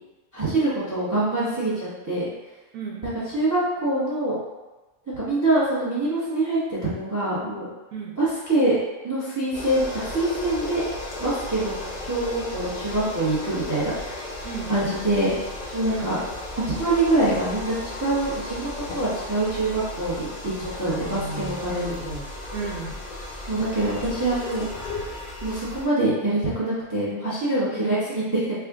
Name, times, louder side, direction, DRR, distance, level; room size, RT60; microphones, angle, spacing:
voice 1, 0.3-2.3 3.0-4.4 5.1-7.6 8.2-8.7 9.0-10.8 11.2-11.7 12.0-14.3 14.7-15.3 15.7-16.2 16.5-21.9 23.5-24.7 25.4-28.5, right 2 dB, 20° right, -8 dB, 0.7 m, -25 dB
voice 2, 2.7-3.1 7.9-8.2 14.4-14.7 15.9-16.2 20.9-23.0 27.7-28.0, right 4 dB, 80° right, -5 dB, 1.0 m, -34 dB
sound 1, 9.5-25.9, left 2 dB, 45° left, 0.5 m, -35 dB
3.5 x 2.1 x 3.5 m, 1.1 s
omnidirectional pair, 1.4 m